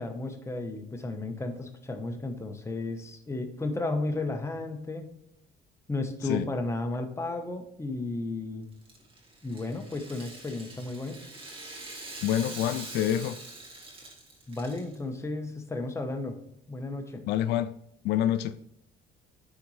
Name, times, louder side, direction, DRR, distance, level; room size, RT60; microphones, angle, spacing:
voice 1, 0.0-5.1 5.9-8.6 9.4-11.2 14.5-16.4 16.7-17.2, left 2 dB, 15° left, 5 dB, 1.2 m, -33 dB
Rattle (instrument), 8.7-14.9, right 2 dB, 30° right, 2.5 m, -44 dB
voice 2, 12.2-13.4 17.3-17.7 18.0-18.5, left 11 dB, 85° left, 13 dB, 0.4 m, -27 dB
11.0 x 4.3 x 3.2 m, 0.74 s
cardioid pair, 110°, 17 cm